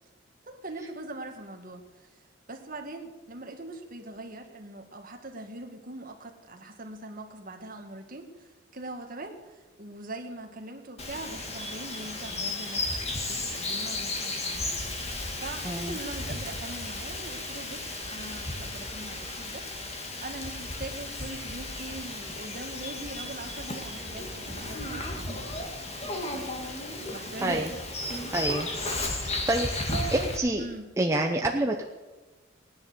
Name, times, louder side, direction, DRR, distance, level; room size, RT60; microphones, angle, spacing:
voice 1, 0.4-2.2 2.5-14.8 15.4-27.7 29.9-30.2 30.6-30.9, right 2 dB, 45° right, 3 dB, 2.0 m, -42 dB
Bird vocalization bird call bird song, 11.0-30.4, left 2 dB, 30° left, 2.1 m, -34 dB
voice 2, 15.6-16.0 27.4-27.7 28.3-28.7 29.2-30.6 31.0-31.8, right 1 dB, 15° right, 1 dB, 0.8 m, -28 dB
18.0 x 10.5 x 6.9 m, 1.2 s
head